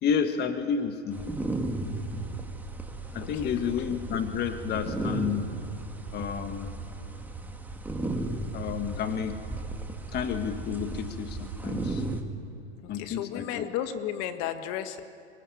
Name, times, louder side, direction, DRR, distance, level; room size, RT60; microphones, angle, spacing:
voice 1, 0.0-1.3 3.1-5.5 6.1-6.7 8.5-9.4 10.1-12.0 12.9-13.7, left 7 dB, 30° left, 7 dB, 1.5 m, -30 dB
sound 1, 1.1-12.2, right 2 dB, 5° right, 1.9 m, -35 dB
voice 2, 3.2-3.7 12.8-15.0, left 10 dB, 45° left, 9 dB, 1.8 m, -34 dB
24.5 x 21.0 x 9.9 m, 2.4 s
hypercardioid pair, 125°, 35 cm